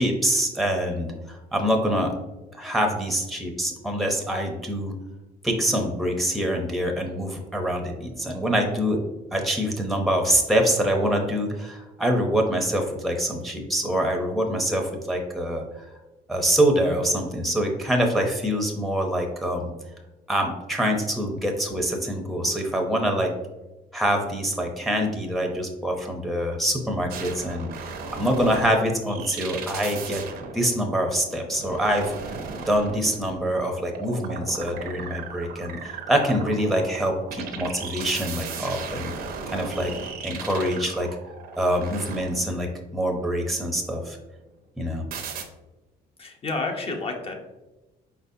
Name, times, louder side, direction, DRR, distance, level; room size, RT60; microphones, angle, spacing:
voice 1, 0.0-2.1 2.5-4.9 5.4-9.0 9.3-15.6 16.3-19.7 20.3-23.3 23.9-30.2 30.5-32.3 32.7-39.1 39.5-39.9 40.2-41.1 41.6-44.2 44.8-45.0, equal, ahead, 2 dB, 0.7 m, -25 dB
sound 1, 27.1-42.8 45.1-45.4, right 5 dB, 60° right, 0.7 m, -37 dB
voice 2, 46.2-47.4, left 3 dB, 35° left, 3 dB, 0.8 m, -30 dB
4.9 x 4.0 x 2.7 m, 1.1 s
cardioid pair, 110°, 17 cm